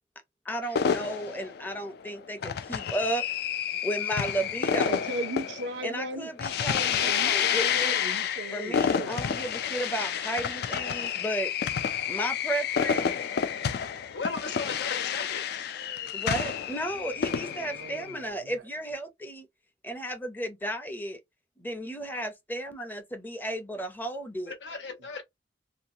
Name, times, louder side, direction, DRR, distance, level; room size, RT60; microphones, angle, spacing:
voice 1, 0.5-3.2 3.8-5.0 5.8-8.0 8.5-11.5 12.1-13.1 16.1-19.5 19.8-21.2 21.6-24.6, right 1 dB, 10° left, 0.6 m, -34 dB
sound 1, 0.8-18.3, left 7 dB, 60° left, 0.3 m, -29 dB
voice 2, 4.8-6.3 6.8-9.2 17.1-18.6 25.0-25.1, right 2 dB, 80° right, 0.6 m, -38 dB
voice 3, 14.1-15.4 24.5-25.2, left 4 dB, 85° left, 0.9 m, -36 dB
2.7 x 2.3 x 2.7 m
head